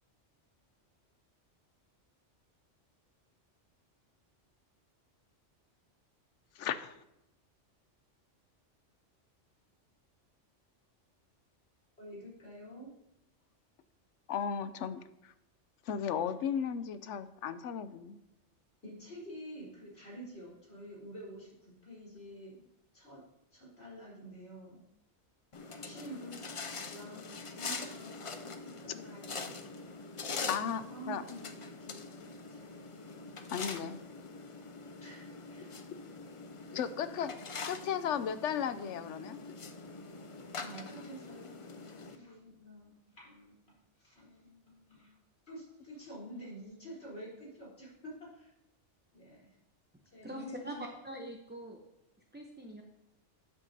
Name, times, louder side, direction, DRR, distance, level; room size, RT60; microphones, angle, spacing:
voice 1, 6.6-7.0 14.3-15.3 15.9-18.2 30.5-30.8 31.1-31.2 33.5-34.0 36.7-37.3 37.7-39.4, left 8 dB, 80° left, 12 dB, 1.0 m, -35 dB
voice 2, 12.0-12.9 18.8-22.6 22.9-23.2 23.5-24.9 25.6-29.8 30.4-32.6 35.0-35.8 40.6-43.6 44.0-45.1 45.5-48.5 49.1-49.6 50.0-50.8, right 1 dB, 60° left, -6 dB, 4.4 m, -49 dB
sound 1, 25.5-42.2, left 4 dB, 40° left, 0.4 m, -44 dB
voice 3, 50.2-51.8 52.3-52.8, right 1 dB, 10° right, 1 dB, 0.7 m, -43 dB
12.5 x 8.3 x 2.8 m, 0.85 s
omnidirectional pair, 1.2 m